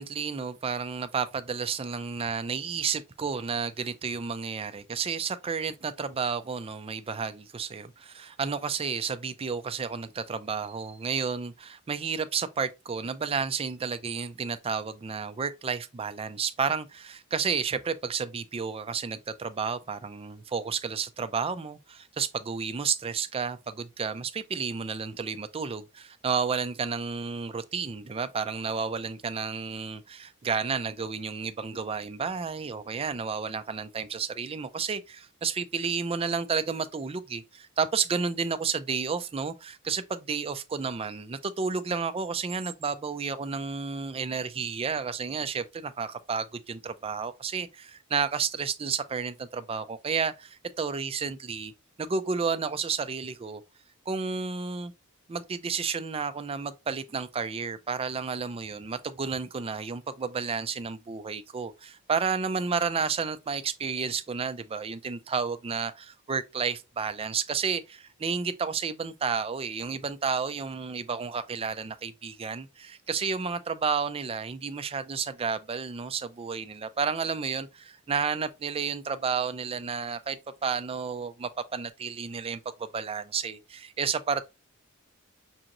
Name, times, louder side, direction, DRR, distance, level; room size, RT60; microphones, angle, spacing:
voice 1, 0.0-51.7 52.0-53.6 54.1-54.9 55.3-84.4, right 5 dB, 25° right, 0.4 m, -31 dB
6.2 x 2.9 x 2.5 m
head